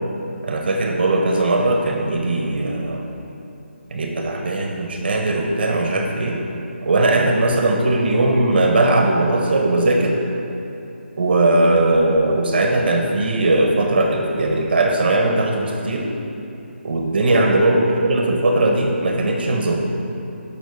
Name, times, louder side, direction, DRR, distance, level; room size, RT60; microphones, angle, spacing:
voice 1, 0.4-3.1 3.9-6.4 6.8-10.2 11.1-16.1 16.8-19.8, right 2 dB, 55° right, 2 dB, 1.1 m, -19 dB
14.0 x 5.9 x 4.1 m, 2.8 s
figure-of-eight pair, 160°, 7 cm